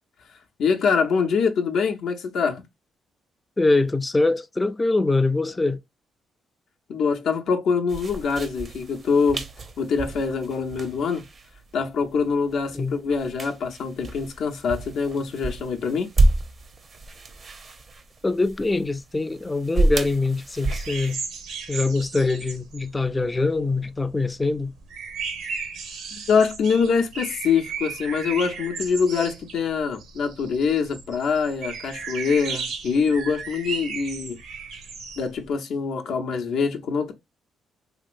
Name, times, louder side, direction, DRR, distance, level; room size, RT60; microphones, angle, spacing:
voice 1, 0.6-2.6 6.9-9.4 9.8-11.2 11.7-16.1 26.3-34.4 35.2-37.1, left 5 dB, 70° left, 0.6 m, -24 dB
voice 2, 3.6-5.8 12.7-13.0 18.2-21.2 21.7-24.7, left 3 dB, 20° left, 0.3 m, -23 dB
sound 1, 7.9-21.1, right 2 dB, 45° right, 0.5 m, -29 dB
sound 2, 20.7-23.9 24.2-35.4, right 5 dB, 85° right, 0.9 m, -35 dB
2.9 x 2.8 x 2.5 m
cardioid pair, 90°, 0 cm